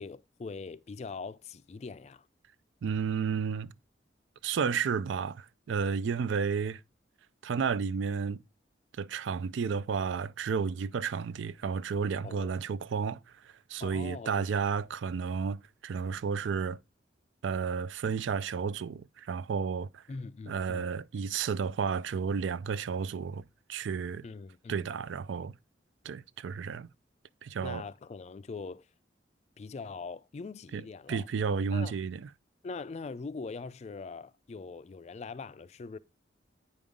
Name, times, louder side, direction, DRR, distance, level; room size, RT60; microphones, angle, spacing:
voice 1, 0.0-2.3 12.2-12.6 13.8-14.6 20.1-20.9 24.2-24.9 27.6-28.9 29.6-31.3 31.7-32.0 32.6-36.0, left 4 dB, 35° left, 0.3 m, -42 dB
voice 2, 2.8-3.7 4.4-6.8 7.4-8.4 9.0-16.8 17.4-20.0 20.5-24.3 24.7-25.5 26.0-26.9 27.4-27.8 30.7-32.3, right 6 dB, 80° right, 0.4 m, -32 dB
8.5 x 5.3 x 3.6 m
head